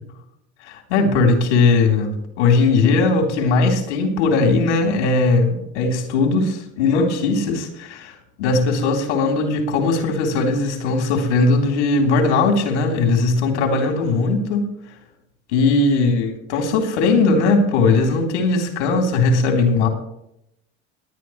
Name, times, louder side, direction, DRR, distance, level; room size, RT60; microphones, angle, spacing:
voice 1, 0.6-14.6 15.5-19.9, left 3 dB, 85° left, 2 dB, 3.6 m, -19 dB
21.5 x 9.7 x 3.2 m, 0.77 s
supercardioid pair, 95°, 34 cm